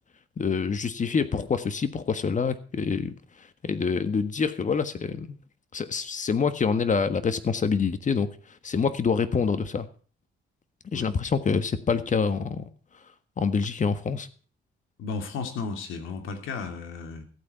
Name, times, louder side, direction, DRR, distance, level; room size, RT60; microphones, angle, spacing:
voice 1, 0.4-3.1 3.6-5.4 5.7-8.3 8.6-9.9 10.9-12.6 13.4-14.3, left 5 dB, 40° left, 12 dB, 1.5 m, -26 dB
voice 2, 15.0-17.3, left 4 dB, 85° left, 6 dB, 2.8 m, -34 dB
14.5 x 8.8 x 5.6 m, 0.42 s
cardioid pair, 90°, 20 cm